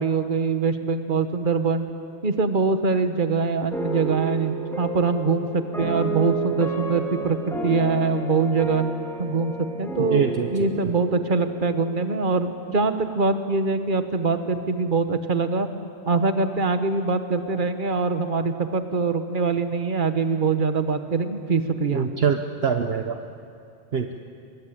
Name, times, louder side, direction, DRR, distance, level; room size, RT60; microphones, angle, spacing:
voice 1, 0.0-1.9 2.2-7.4 7.6-8.8 9.2-9.5 9.8-15.7 16.1-22.1, right 4 dB, 50° right, 8 dB, 1.5 m, -23 dB
sound 1, 3.7-12.9, right 3 dB, ahead, 3.1 m, -31 dB
voice 2, 10.1-10.5 21.9-23.2 23.9-24.2, right 6 dB, 65° right, 5 dB, 1.2 m, -24 dB
24.0 x 22.0 x 8.6 m, 2.5 s
omnidirectional pair, 1.1 m